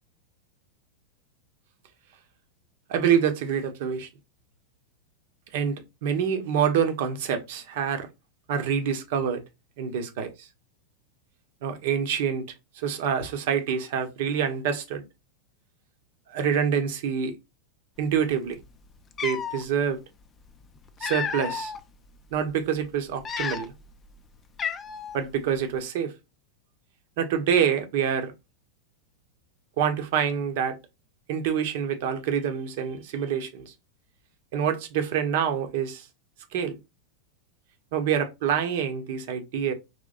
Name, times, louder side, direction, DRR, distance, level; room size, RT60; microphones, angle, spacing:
voice 1, 2.9-4.1 5.5-8.1 8.5-9.4 9.8-10.5 11.6-12.5 12.8-15.0 16.3-17.4 18.0-18.6 19.2-20.0 21.0-21.7 22.3-23.7 25.1-26.1 27.2-28.3 29.8-30.8 31.3-33.7 34.5-36.0 36.5-36.8 37.9-39.7, right 8 dB, 50° right, 1.0 m, -26 dB
Cat, 18.6-18.7 19.1-19.6 20.6-21.8 22.3-22.5 23.1-23.9 24.2-24.3 24.6-25.2, left 7 dB, 20° left, 0.5 m, -32 dB
5.1 x 3.3 x 2.5 m
figure-of-eight pair, 90°, 0 cm